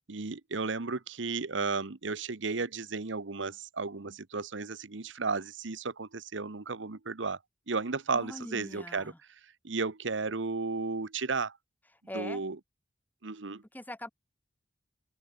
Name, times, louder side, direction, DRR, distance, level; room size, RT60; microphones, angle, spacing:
voice 1, 0.1-7.4 7.7-9.1 9.6-11.6 12.1-12.6 13.2-13.6, right 4 dB, 75° right, 1.1 m, -34 dB
voice 2, 8.1-9.2 12.1-12.4 13.7-14.1, left 1 dB, 10° left, 2.8 m, -41 dB
open air
head